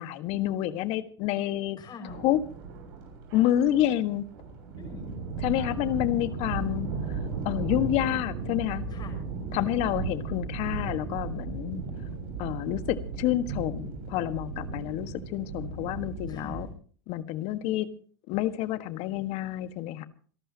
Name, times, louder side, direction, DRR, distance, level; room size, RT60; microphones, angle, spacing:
voice 1, 0.0-1.8 2.2-2.4 3.3-4.2 5.4-7.2 7.4-8.8 9.5-11.8 12.4-16.7 17.1-17.9 18.3-20.0, left 13 dB, 55° left, 11 dB, 1.6 m, -28 dB
voice 2, 1.8-2.2 4.8-5.1 8.9-9.2 9.5-9.7 16.3-16.6, left 5 dB, 35° left, 2 dB, 6.0 m, -43 dB
sound 1, 2.0-16.7, right 4 dB, 70° right, 7.0 m, -36 dB
28.0 x 12.0 x 2.9 m, 0.43 s
hypercardioid pair, 105°, 13 cm